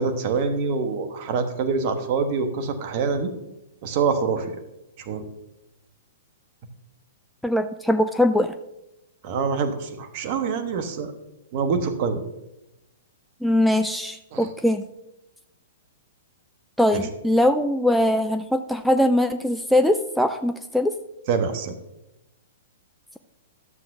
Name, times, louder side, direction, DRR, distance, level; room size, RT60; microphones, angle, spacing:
voice 1, 0.0-3.3 3.8-4.5 5.0-5.2 9.2-11.1 11.5-12.2 14.3-14.5 16.9-17.0 21.3-21.7, right 5 dB, 45° right, 7 dB, 1.2 m, -25 dB
voice 2, 7.4-8.5 13.4-14.9 16.8-20.9, left 1 dB, ahead, 7 dB, 0.3 m, -21 dB
12.5 x 7.5 x 2.6 m, 0.90 s
figure-of-eight pair, 115°, 0 cm